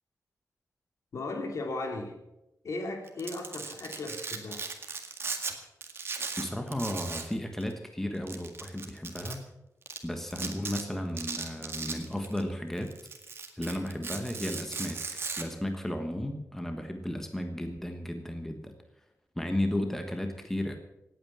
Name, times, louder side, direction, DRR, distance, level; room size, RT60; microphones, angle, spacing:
voice 1, 1.1-2.2 2.6-4.6, left 2 dB, 60° left, 4 dB, 2.9 m, -36 dB
Domestic sounds home sounds, 3.1-5.5 5.8-7.3 7.6-7.7 8.3-9.3 9.9-10.0 10.3-10.8 11.2-12.4 12.8-15.4, right 4 dB, 45° right, 1.9 m, -37 dB
voice 2, 6.4-9.4 10.0-12.9 13.6-15.0 15.4-18.7 19.3-20.8, left 1 dB, 5° left, 5 dB, 1.3 m, -34 dB
18.0 x 9.2 x 7.4 m, 0.91 s
wide cardioid pair, 150°, 6 cm